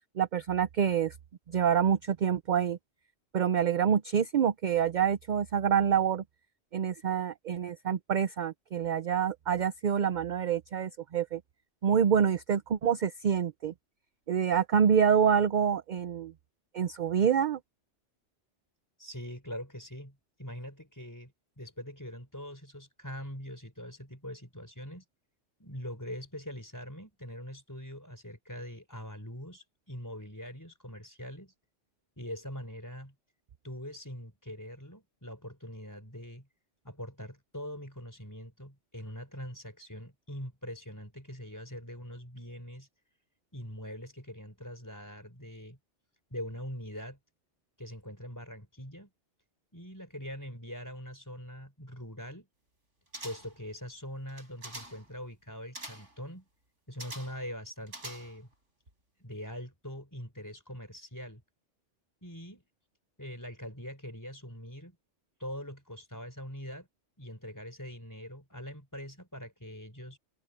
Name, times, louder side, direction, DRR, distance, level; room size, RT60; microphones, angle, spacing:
voice 1, 0.2-1.1 1.5-2.8 3.3-6.2 6.7-11.4 11.8-13.7 14.3-16.3 16.7-17.6, right 8 dB, 50° right, 0.6 m, -27 dB
voice 2, 19.0-25.0 25.6-31.5 32.2-33.1 33.6-36.5 36.8-42.9 43.5-45.8 46.3-47.2 47.8-49.1 49.7-52.5 53.2-56.5 56.9-58.5 59.2-61.4 62.2-62.6 63.2-65.0 65.4-66.9 67.2-70.2, equal, 15° left, 4.6 m, -43 dB
sound 1, 53.1-53.6 54.3-55.1 55.7-56.2 57.0-57.5 57.9-58.5 58.9-59.0, right 1 dB, 75° right, 7.7 m, -45 dB
omnidirectional pair, 1.2 m